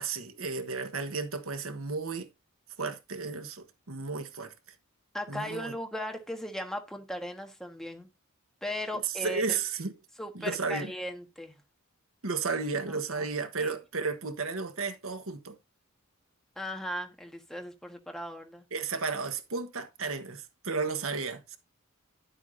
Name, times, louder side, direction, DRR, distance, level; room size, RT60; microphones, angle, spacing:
voice 1, 0.0-2.3 2.8-4.5 5.3-5.7 9.0-9.9 10.3-10.9 12.2-15.6 18.7-21.6, right 4 dB, 80° right, 1.4 m, -33 dB
voice 2, 5.1-8.1 8.6-9.5 10.2-11.6 13.1-13.3 13.6-13.7 16.6-18.6, left 1 dB, ahead, 1.4 m, -37 dB
11.5 x 8.2 x 2.7 m
head